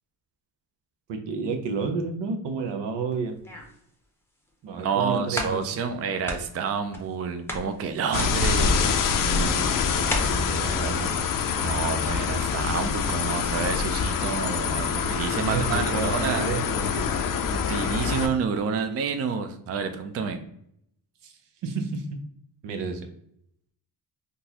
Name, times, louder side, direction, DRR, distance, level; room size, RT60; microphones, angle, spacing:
voice 1, 1.1-3.4 4.6-5.7 9.1-11.1 15.3-17.1 21.2-21.3 21.6-22.2 22.6-23.1, right 5 dB, 80° right, 5 dB, 0.7 m, -31 dB
sound 1, 3.1-3.9 4.5-4.6 5.0-5.1 5.3-6.0 6.2-7.2 7.5-10.2, left 1 dB, 5° left, 0.6 m, -36 dB
voice 2, 4.8-8.9 11.6-16.5 17.5-20.4, right 6 dB, 35° right, 8 dB, 0.4 m, -29 dB
sound 2, 8.1-18.3, left 6 dB, 50° left, 0.5 m, -25 dB
3.8 x 2.5 x 2.8 m, 0.71 s
cardioid pair, 105°, 42 cm